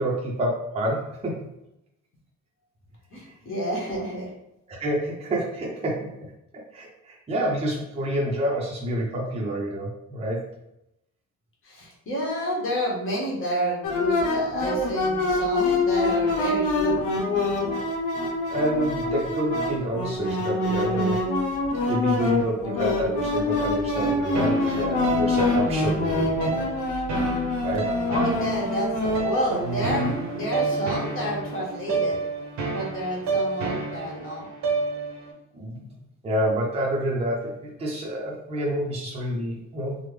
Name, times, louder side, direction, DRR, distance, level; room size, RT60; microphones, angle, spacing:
voice 1, 0.0-1.5 4.7-6.1 6.7-10.5 18.5-21.3 21.9-26.3 27.6-27.9 33.3-33.4 35.5-35.9 36.2-40.0, right 1 dB, 20° right, -3 dB, 0.5 m, -28 dB
voice 2, 3.1-4.3 11.6-17.0 28.1-32.2 32.7-34.5, equal, 45° left, -3 dB, 1.1 m, -29 dB
sound 1, 13.8-30.2, left 2 dB, 90° left, 0.7 m, -25 dB
sound 2, 24.3-35.3, right 3 dB, 65° right, 0.6 m, -30 dB
3.3 x 2.0 x 3.2 m, 0.85 s
cardioid pair, 150°, 30 cm